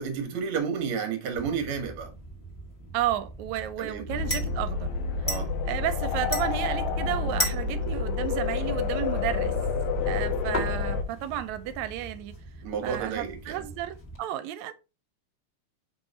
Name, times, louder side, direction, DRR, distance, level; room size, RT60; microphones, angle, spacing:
voice 1, 0.0-2.1 3.8-4.1 5.3-5.5 12.6-13.7, right 6 dB, 55° right, 1.9 m, -31 dB
sound 1, 1.4-14.2, equal, 25° left, 1.4 m, -38 dB
voice 2, 2.9-4.9 5.7-9.5 10.1-12.3 12.8-14.7, right 12 dB, 80° right, 1.9 m, -32 dB
sound 2, 4.1-11.0, left 5 dB, 80° left, 2.2 m, -29 dB
5.1 x 4.6 x 4.1 m
omnidirectional pair, 3.3 m